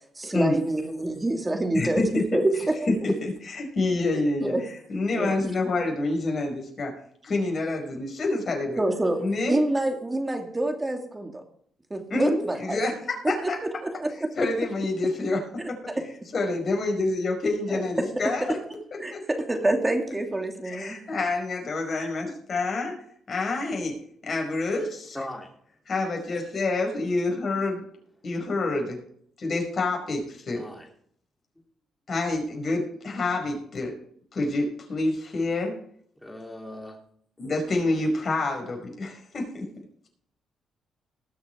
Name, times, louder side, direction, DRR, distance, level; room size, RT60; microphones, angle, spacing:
voice 1, 0.2-2.5 4.1-4.6 5.1-5.4 8.8-9.2 9.5-11.4 11.9-12.8 13.2-13.3 13.8-14.3 15.9-16.0 17.7-17.8 19.0-19.1 19.5-21.0, right 1 dB, 15° right, 4 dB, 2.5 m, -27 dB
voice 2, 1.7-2.4 3.0-4.5 4.9-6.9 7.2-8.8 9.2-9.6 12.1-12.9 13.3-13.6 14.4-15.8 16.3-18.6 19.1-19.2 20.6-22.9 23.3-25.2 25.9-27.8 28.2-29.0 29.4-30.6 32.1-33.9 34.3-35.7 37.4-39.7, left 2 dB, 45° left, 2 dB, 5.0 m, -27 dB
voice 3, 25.1-25.5 30.5-30.9 36.2-37.0 37.4-37.5, left 1 dB, 5° left, 1 dB, 2.8 m, -39 dB
19.5 x 6.7 x 4.6 m, 0.63 s
cardioid pair, 90°, 0 cm